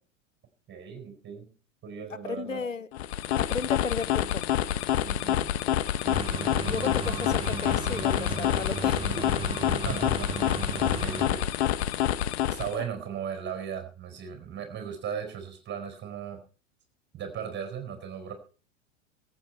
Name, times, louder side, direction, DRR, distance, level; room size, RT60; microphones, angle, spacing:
voice 1, 0.7-1.5 1.8-2.6 5.0-5.5 9.8-11.5 12.5-16.4 17.1-18.3, right 8 dB, 30° right, 4.5 m, -37 dB
voice 2, 2.2-2.9 3.4-4.5 6.6-9.4, left 5 dB, 85° left, 0.8 m, -34 dB
sound 1, 2.9-12.9, left 11 dB, 55° left, 1.0 m, -27 dB
sound 2, 6.0-11.3, right 4 dB, 15° right, 2.0 m, -35 dB
23.0 x 8.5 x 4.5 m
figure-of-eight pair, 85°, 38 cm